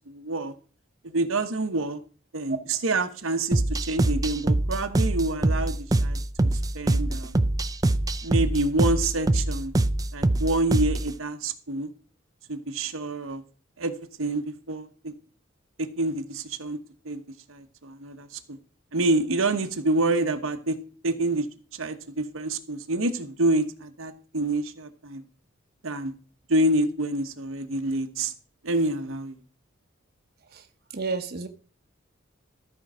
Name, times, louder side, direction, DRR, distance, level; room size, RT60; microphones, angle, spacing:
voice 1, 0.1-0.5 1.0-2.0 2.3-7.4 8.2-9.7 10.1-11.9 12.5-13.4 13.8-15.1 15.8-16.8 17.0-17.2 17.5-18.6 18.9-20.8 21.0-21.5 21.7-25.2 25.8-26.1 26.5-28.3 28.6-29.4, right 2 dB, 90° right, 1.1 m, -27 dB
sound 1, 3.5-11.1, right 2 dB, 20° right, 0.4 m, -24 dB
voice 2, 30.9-31.5, right 4 dB, 50° right, 0.8 m, -31 dB
13.5 x 4.6 x 6.3 m
head